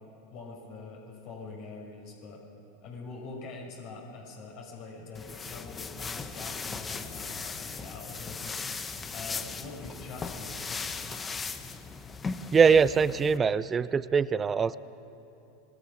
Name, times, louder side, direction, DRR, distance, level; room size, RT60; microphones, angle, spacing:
voice 1, 0.3-2.4 2.8-8.6 9.1-10.9, left 4 dB, 55° left, -1 dB, 5.8 m, -44 dB
sound 1, 5.1-13.4, left 4 dB, 20° left, 1.3 m, -38 dB
voice 2, 12.5-14.8, right 6 dB, 25° right, 17 dB, 0.6 m, -22 dB
25.0 x 19.5 x 6.3 m, 3.0 s
hypercardioid pair, 90°, 0 cm